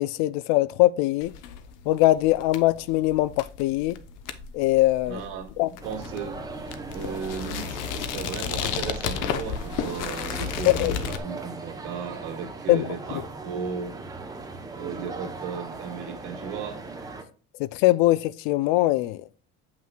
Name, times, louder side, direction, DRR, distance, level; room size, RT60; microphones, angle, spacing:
voice 1, 0.0-1.3 1.9-4.0 4.5-5.2 5.6-5.7 10.8-10.9 12.7-12.9 17.6-19.2, left 17 dB, 90° left, 0.5 m, -22 dB
sound 1, 1.2-11.2, left 8 dB, 70° left, 0.8 m, -33 dB
voice 2, 5.1-5.5 5.8-6.4 6.9-13.9 14.7-16.8, right 6 dB, 80° right, 2.0 m, -35 dB
sound 2, 5.8-17.2, right 3 dB, 10° right, 0.7 m, -39 dB
7.5 x 5.9 x 2.2 m
cardioid pair, 155°, 33 cm